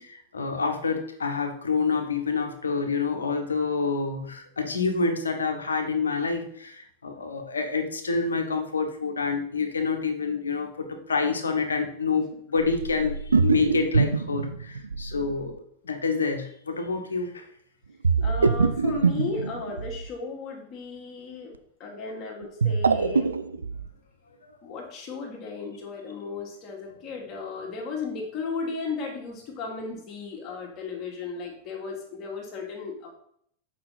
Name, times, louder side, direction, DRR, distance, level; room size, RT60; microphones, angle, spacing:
voice 1, 0.0-15.6 15.8-17.4, left 4 dB, 75° left, 5 dB, 1.1 m, -27 dB
sound 1, 12.6-15.4 18.0-20.1 22.4-23.9, right 4 dB, 75° right, 0.4 m, -24 dB
voice 2, 15.1-15.5 18.2-21.5 21.8-23.3 24.6-33.1, left 4 dB, 35° left, 0 dB, 1.9 m, -35 dB
7.7 x 5.2 x 4.0 m, 0.67 s
figure-of-eight pair, 90°, 0 cm